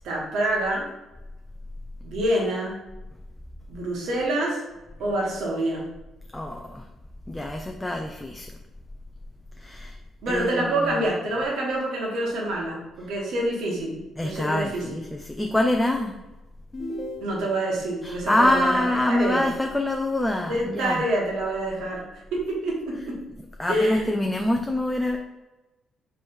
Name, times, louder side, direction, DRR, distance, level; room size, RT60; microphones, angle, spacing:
voice 1, 0.0-0.9 2.0-2.8 3.7-4.6 5.0-5.9 10.2-14.8 17.2-19.5 20.5-22.0 22.3-23.2 23.7-24.1, right 1 dB, 80° right, -2 dB, 1.3 m, -27 dB
voice 2, 6.3-6.8 7.3-8.5 9.6-10.0 10.3-10.9 14.2-16.1 18.0-21.0 23.6-25.2, left 1 dB, 10° left, 3 dB, 0.4 m, -25 dB
sound 1, 16.7-17.8, left 1 dB, 30° left, 1.0 m, -35 dB
3.4 x 3.1 x 4.3 m, 1.0 s
cardioid pair, 90°, 0 cm